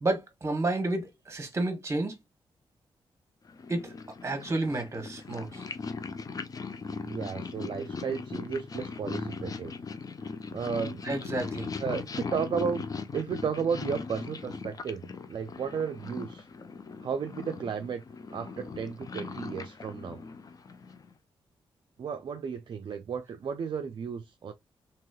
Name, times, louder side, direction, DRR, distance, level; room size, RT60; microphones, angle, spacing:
voice 1, 0.0-2.2 3.7-3.9 4.2-5.7 11.0-11.7, right 2 dB, 30° right, 1.0 m, -31 dB
Purr, 3.5-21.1, left 4 dB, 35° left, 0.4 m, -39 dB
voice 2, 7.0-9.7 10.5-11.1 11.8-12.8 13.1-16.5 17.0-18.0 18.3-20.3 22.0-24.5, right 6 dB, 50° right, 0.4 m, -33 dB
3.0 x 2.9 x 2.3 m
cardioid pair, 90°, 10 cm